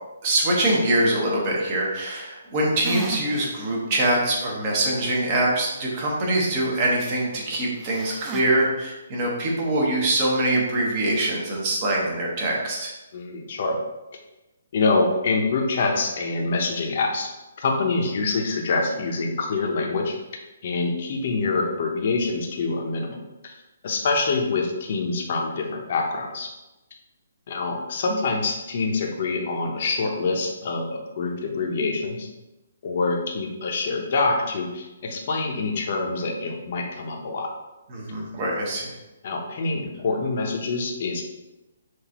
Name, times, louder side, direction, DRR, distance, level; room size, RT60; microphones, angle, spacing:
voice 1, 0.2-12.9 37.9-38.9, right 1 dB, 35° right, -3 dB, 1.3 m, -24 dB
sound 1, 2.8-3.5 4.0-4.1 7.8-8.4, right 4 dB, 15° right, 0.4 m, -34 dB
voice 2, 13.1-13.8 14.7-17.3 17.6-20.2 20.6-23.5 23.8-26.5 27.5-32.3 32.8-37.5 39.2-41.2, left 3 dB, 50° left, 1 dB, 0.8 m, -25 dB
5.9 x 2.6 x 3.0 m, 1.0 s
hypercardioid pair, 150°, 0 cm